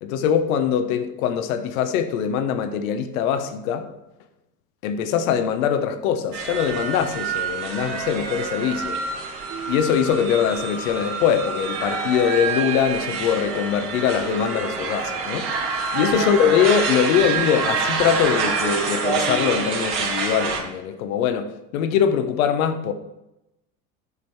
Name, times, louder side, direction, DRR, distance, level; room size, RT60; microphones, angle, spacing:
voice 1, 0.0-3.9 4.8-9.0 9.7-15.5 15.9-22.9, left 8 dB, 70° left, 1.0 m, -22 dB
sound 1, 6.3-20.6, right 4 dB, 60° right, 1.9 m, -27 dB
8.4 x 5.2 x 4.4 m
hypercardioid pair, 85°, 43 cm